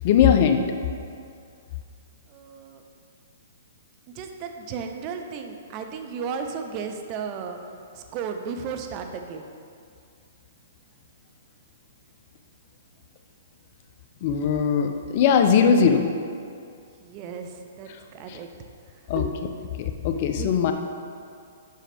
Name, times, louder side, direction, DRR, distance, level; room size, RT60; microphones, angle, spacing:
voice 1, 0.0-0.6 14.2-16.1 18.3-18.4 19.1-19.2 19.8-20.7, left 7 dB, 45° left, 6 dB, 0.6 m, -20 dB
voice 2, 2.3-2.8 4.1-7.6 7.9-9.5 15.8-16.0 17.0-18.5 19.2-19.4 20.4-20.5, right 6 dB, 35° right, 5 dB, 0.6 m, -34 dB
7.5 x 5.6 x 3.5 m, 2.3 s
hypercardioid pair, 130°, 0 cm